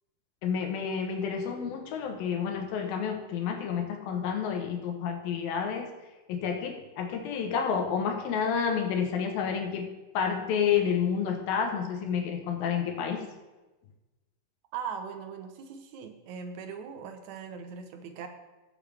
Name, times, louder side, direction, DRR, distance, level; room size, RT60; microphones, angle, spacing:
voice 1, 0.4-5.9 6.3-13.3, left 7 dB, 85° left, 4 dB, 3.0 m, -30 dB
voice 2, 14.7-18.3, right 6 dB, 65° right, 6 dB, 2.1 m, -40 dB
20.5 x 6.9 x 3.4 m, 1.1 s
omnidirectional pair, 4.1 m